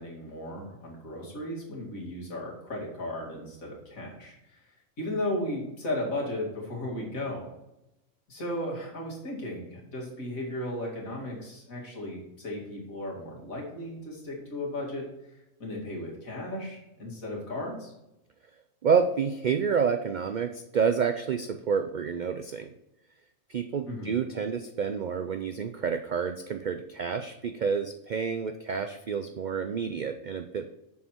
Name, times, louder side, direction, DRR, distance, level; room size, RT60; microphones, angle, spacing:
voice 1, 0.0-4.6 5.0-7.5 8.3-15.1 15.6-17.9 23.9-24.1, left 1 dB, 85° left, -2 dB, 2.7 m, -35 dB
voice 2, 18.8-22.7 23.5-30.7, right 6 dB, 80° right, 8 dB, 0.4 m, -29 dB
7.1 x 6.4 x 4.5 m, 0.90 s
omnidirectional pair, 1.4 m